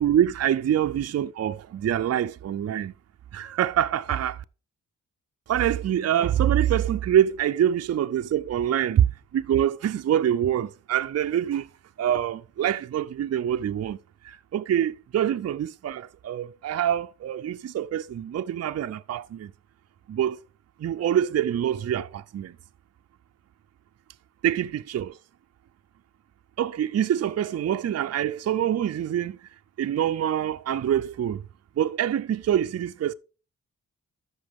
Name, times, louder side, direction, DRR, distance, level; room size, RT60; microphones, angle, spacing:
voice 1, 0.0-2.9 3.3-4.4 5.5-9.1 9.3-11.7 12.0-14.0 14.2-19.5 20.1-20.4 20.8-22.6 24.4-25.2 26.6-29.4 29.8-31.4 31.8-33.1, right 10 dB, 50° right, 0.5 m, -25 dB
13.0 x 6.0 x 3.6 m
wide cardioid pair, 100°, 32 cm